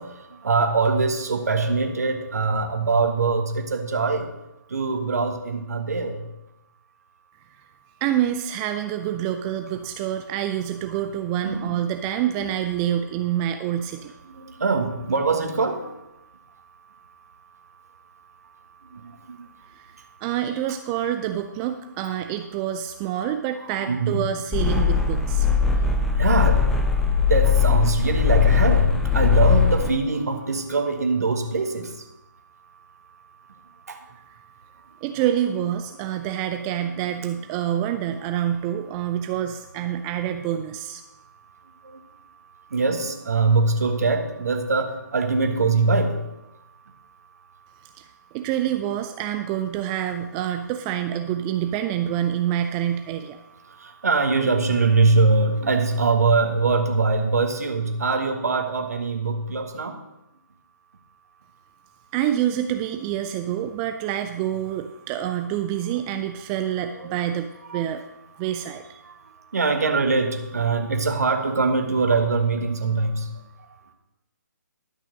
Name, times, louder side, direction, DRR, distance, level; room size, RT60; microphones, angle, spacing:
voice 1, 0.0-4.3 4.7-6.2 11.4-11.8 14.3-15.9 18.8-19.5 23.6-24.3 25.5-26.7 26.9-32.0 33.9-34.0 36.6-36.9 41.8-42.0 42.7-46.2 53.7-60.0 67.0-67.2 67.7-67.8 69.0-73.3, right 4 dB, 55° right, 5 dB, 1.5 m, -23 dB
voice 2, 8.0-14.1 19.8-19.9 20.2-25.5 35.0-41.0 48.0-48.1 48.3-53.4 62.1-68.0 68.4-69.0, right 11 dB, 15° right, 8 dB, 0.3 m, -27 dB
sound 1, 24.5-29.9, left 7 dB, 5° left, 0.7 m, -20 dB
12.0 x 6.1 x 6.3 m, 0.95 s
figure-of-eight pair, 140°, 10 cm